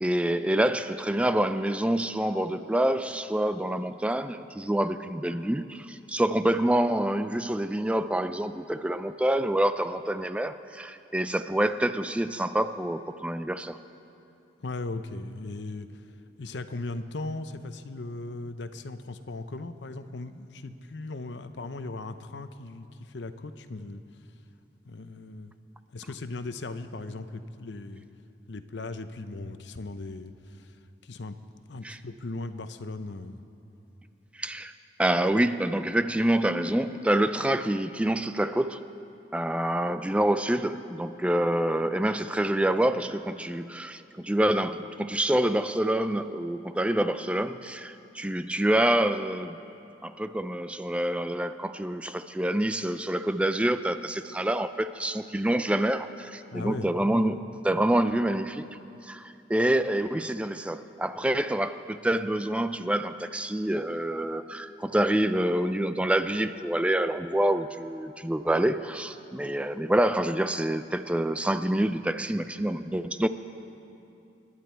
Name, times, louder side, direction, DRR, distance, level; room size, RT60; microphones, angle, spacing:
voice 1, 0.0-13.8 31.8-32.0 34.3-34.7 35.0-38.8 39.3-49.6 50.0-58.7 59.0-73.3, right 1 dB, 5° right, 11 dB, 0.3 m, -27 dB
voice 2, 14.6-16.0 16.4-24.0 24.8-25.5 25.9-28.1 28.5-30.8 31.0-31.4 31.7-33.4 56.5-57.4 57.8-57.9, left 2 dB, 80° left, 10 dB, 0.7 m, -38 dB
26.5 x 11.5 x 4.5 m, 2.7 s
head